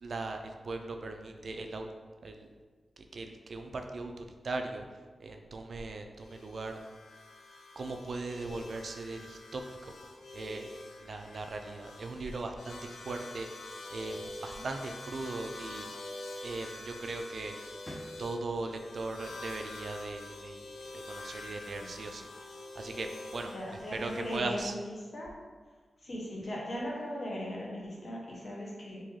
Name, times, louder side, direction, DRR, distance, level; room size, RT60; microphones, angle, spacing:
voice 1, 0.0-1.9 2.2-2.5 3.1-4.8 5.2-6.7 7.8-10.0 10.3-10.7 11.0-13.5 13.9-15.9 16.4-17.5 18.2-20.6 20.9-22.3 22.8-23.1 23.3-23.5 23.9-24.7, right 3 dB, 60° right, 5 dB, 0.3 m, -38 dB
sound 1, 6.2-24.4, left 2 dB, 85° left, 0.4 m, -46 dB
sound 2, 14.0-15.4 16.8-17.1 17.5-18.7, left 1 dB, 20° left, 0.5 m, -51 dB
voice 2, 23.5-25.3 26.0-29.0, equal, 50° left, -4 dB, 1.0 m, -39 dB
3.7 x 2.8 x 3.1 m, 1.4 s
wide cardioid pair, 85°, 0 cm